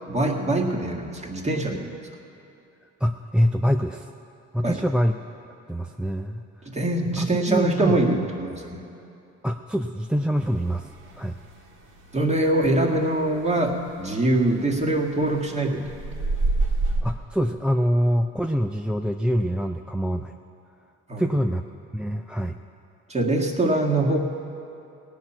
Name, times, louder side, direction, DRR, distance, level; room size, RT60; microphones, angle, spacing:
voice 1, 0.1-2.0 4.6-4.8 6.7-8.8 12.1-16.0 21.1-21.3 23.1-24.2, right 2 dB, 20° right, -1 dB, 1.8 m, -23 dB
voice 2, 3.0-4.1 4.5-5.2 5.7-6.4 7.2-8.0 9.4-10.9 11.2-11.4 17.0-20.3 21.2-21.6 21.9-22.6, equal, 5° right, 4 dB, 0.4 m, -25 dB
sound 1, 10.4-12.4 12.7-17.0, right 2 dB, 80° right, 1.8 m, -27 dB
17.5 x 5.8 x 10.0 m, 2.8 s
cardioid pair, 90°, 30 cm